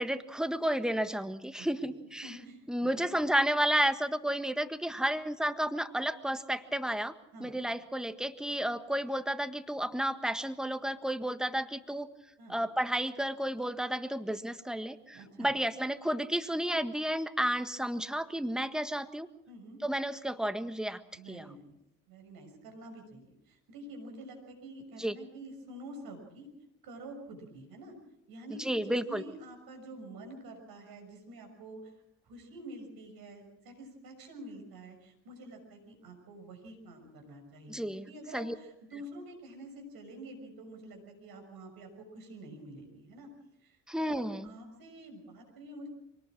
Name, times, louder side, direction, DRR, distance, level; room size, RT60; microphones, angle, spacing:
voice 1, 0.0-2.3 2.7-7.1 7.4-12.1 12.5-19.3 19.8-21.0 21.3-21.5 25.0-25.1 28.6-29.2 37.7-38.0 38.3-38.5 43.9-44.5, right 1 dB, ahead, 10 dB, 1.6 m, -32 dB
voice 2, 1.6-3.1 7.3-7.5 12.4-12.6 15.1-15.5 19.5-19.8 21.1-21.8 22.1-26.5 26.8-27.9 28.3-31.9 32.2-43.3 43.6-45.9, right 1 dB, 65° right, 4 dB, 6.4 m, -48 dB
24.0 x 19.0 x 6.2 m, 0.82 s
hypercardioid pair, 50°, 38 cm